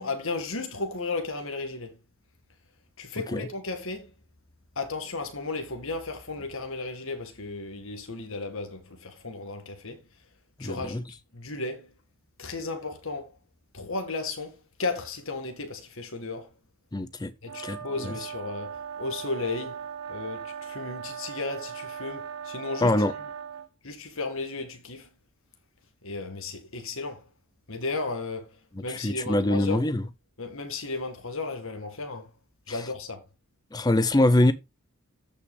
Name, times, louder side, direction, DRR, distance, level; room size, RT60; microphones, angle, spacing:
voice 1, 0.0-2.0 3.0-4.1 4.8-10.0 10.6-11.0 11.3-11.9 12.4-13.4 13.7-16.5 17.4-19.8 20.1-23.0 23.8-25.1 26.0-27.3 27.7-29.8 30.4-32.3 32.7-33.3, left 3 dB, 65° left, 2.0 m, -34 dB
voice 2, 10.6-11.0 16.9-17.3 17.6-18.1 22.8-23.1 28.9-30.0 32.7-32.8 33.7-34.5, left 1 dB, 15° left, 0.6 m, -24 dB
sound 1, 17.4-23.7, right 7 dB, 85° right, 1.3 m, -39 dB
14.5 x 5.9 x 2.2 m
head